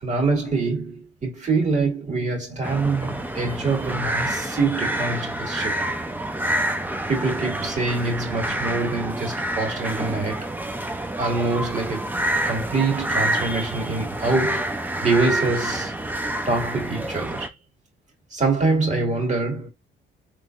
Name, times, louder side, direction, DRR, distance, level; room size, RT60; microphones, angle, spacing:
voice 1, 0.0-5.8 7.1-10.5 11.2-12.1 12.5-14.8 15.0-15.9 16.5-17.5 18.3-19.7, right 3 dB, 35° right, 2.3 m, -25 dB
sound 1, 2.6-17.5, right 1 dB, 10° right, 0.7 m, -28 dB
3.8 x 3.3 x 2.5 m
cardioid pair, 90°, 20 cm